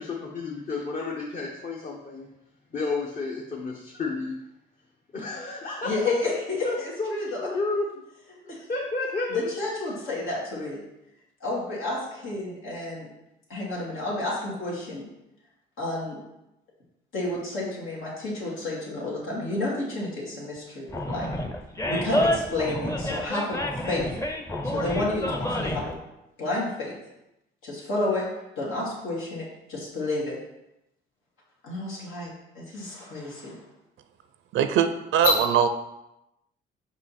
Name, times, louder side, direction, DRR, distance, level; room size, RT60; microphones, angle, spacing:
voice 1, 0.0-2.3 2.7-4.4 5.1-6.0 6.6-7.1 7.4-7.9 8.4-9.5, left 3 dB, 45° left, -2 dB, 1.0 m, -31 dB
voice 2, 5.8-7.5 8.5-8.6 9.3-10.8 11.4-13.1 13.5-15.0 15.8-16.2 17.1-21.3 21.9-23.6 23.9-24.0 24.7-26.0 26.4-26.9 27.6-28.2 28.6-30.4 31.6-33.5 35.2-35.3, left 2 dB, 85° left, -5 dB, 2.4 m, -30 dB
Animal, 20.9-25.9, equal, 15° left, 0.7 m, -28 dB
voice 3, 34.5-35.7, right 8 dB, 80° right, 10 dB, 0.5 m, -21 dB
5.3 x 5.0 x 4.3 m, 0.91 s
cardioid pair, 90°, 20 cm